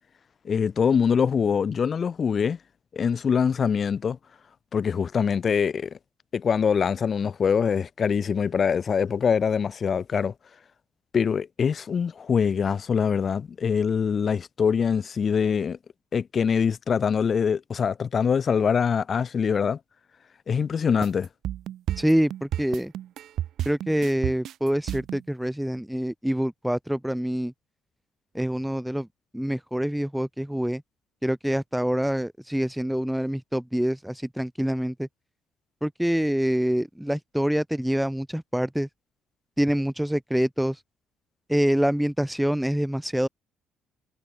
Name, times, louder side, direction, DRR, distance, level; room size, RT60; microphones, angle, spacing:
voice 1, 0.4-2.6 2.9-4.2 4.7-6.0 6.3-10.3 11.1-15.8 16.1-19.8 20.5-21.3, left 6 dB, 30° left, 1.2 m, -24 dB
sound 1, 21.0-25.2, right 12 dB, 55° right, 0.7 m, -31 dB
voice 2, 22.0-22.9 23.7-27.5 28.3-29.1 29.3-30.8 31.2-35.1 35.8-38.9 39.6-40.8 41.5-43.3, equal, ahead, 0.4 m, -26 dB
cardioid pair, 170°, 0 cm